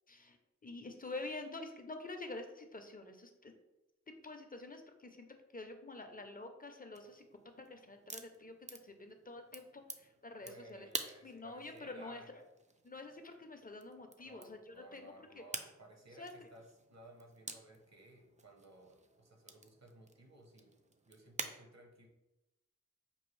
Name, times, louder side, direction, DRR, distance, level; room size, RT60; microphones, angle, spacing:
voice 1, 0.6-3.5 4.2-5.3 5.5-7.3 7.6-10.9 11.2-12.4 12.8-15.5 16.2-16.5, left 2 dB, 30° left, 5 dB, 0.5 m, -48 dB
sound 1, 6.9-21.6, right 3 dB, 25° right, 0.4 m, -50 dB
voice 2, 10.4-12.3 14.2-20.7 21.1-22.1, right 1 dB, 60° right, 1 dB, 0.9 m, -58 dB
5.3 x 2.4 x 3.1 m, 0.97 s
wide cardioid pair, 55°, 30 cm